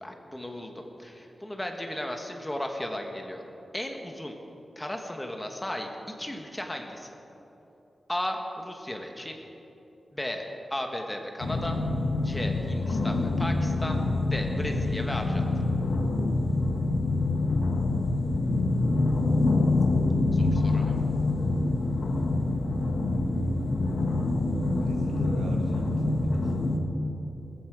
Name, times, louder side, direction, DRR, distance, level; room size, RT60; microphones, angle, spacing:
voice 1, 0.0-3.4 3.7-4.3 4.8-5.9 6.2-7.2 8.1-9.4 10.1-11.8 12.2-14.0 14.3-15.4 20.3-21.0, left 1 dB, 10° left, 3 dB, 1.3 m, -35 dB
sound 1, 11.4-26.8, left 2 dB, 85° left, 1.5 m, -26 dB
voice 2, 20.4-20.8 24.8-26.5, right 2 dB, 90° right, 2 dB, 2.1 m, -43 dB
20.0 x 14.5 x 4.9 m, 3.0 s
wide cardioid pair, 175°, 0 cm